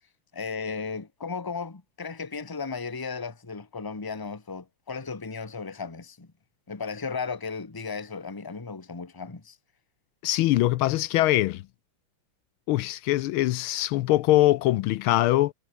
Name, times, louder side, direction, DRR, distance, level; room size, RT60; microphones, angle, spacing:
voice 1, 0.3-6.3 6.7-9.6, left 5 dB, 10° left, 1.2 m, -35 dB
voice 2, 10.2-11.6 12.7-15.5, left 16 dB, 80° left, 1.4 m, -22 dB
omnidirectional pair, 2.3 m